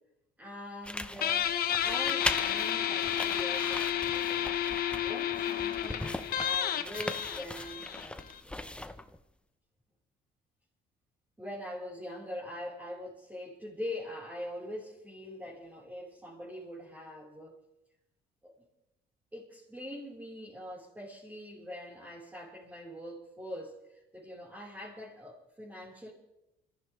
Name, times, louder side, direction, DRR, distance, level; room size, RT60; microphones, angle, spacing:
voice 1, 0.4-4.6 5.0-8.6 11.4-17.6 18.4-18.5 19.3-26.1, left 1 dB, 10° right, -7 dB, 4.9 m, -43 dB
sound 1, 0.8-9.2, left 1 dB, 5° left, 0.9 m, -39 dB
Guitar, 1.2-8.4, left 10 dB, 60° left, 1.2 m, -31 dB
25.5 x 14.5 x 3.5 m, 0.88 s
cardioid pair, 110°, 17 cm